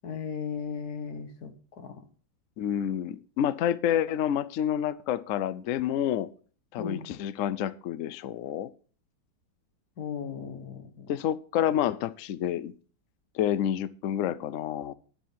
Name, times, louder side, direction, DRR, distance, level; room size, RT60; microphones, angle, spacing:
voice 1, 0.0-1.5 1.8-2.0 6.8-7.1 10.0-11.1, left 6 dB, 60° left, 8 dB, 1.6 m, -36 dB
voice 2, 2.6-6.3 6.7-8.7 11.1-12.7 13.3-14.9, left 10 dB, 75° left, 17 dB, 0.7 m, -28 dB
10.0 x 7.4 x 5.7 m, 0.41 s
omnidirectional pair, 2.0 m